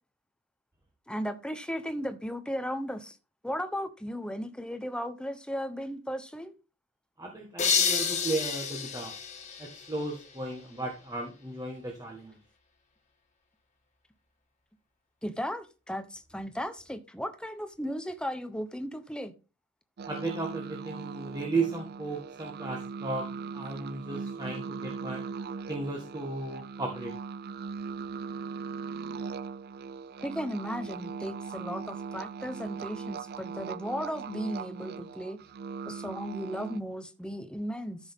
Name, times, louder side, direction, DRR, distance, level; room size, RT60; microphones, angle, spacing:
voice 1, 1.1-3.2 3.4-6.6 15.2-19.3 30.2-35.4 35.9-38.0, equal, 5° left, 0.9 m, -35 dB
voice 2, 7.2-9.1 9.6-12.4 20.1-23.2 23.5-25.2 25.7-27.1, right 2 dB, 15° right, 1.5 m, -35 dB
sound 1, 7.6-10.4, left 6 dB, 30° left, 1.8 m, -30 dB
sound 2, 20.0-36.8, right 5 dB, 45° right, 0.4 m, -39 dB
13.5 x 6.1 x 3.6 m
head